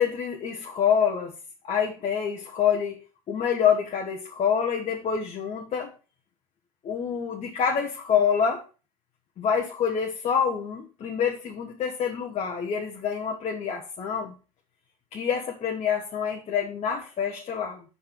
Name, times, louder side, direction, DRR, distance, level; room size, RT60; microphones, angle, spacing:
voice 1, 0.0-1.3 1.6-3.0 3.3-5.9 6.8-8.6 9.4-14.3 15.1-17.8, left 7 dB, 40° left, 1 dB, 1.2 m, -26 dB
5.5 x 4.9 x 5.7 m, 0.34 s
hypercardioid pair, 95°, 18 cm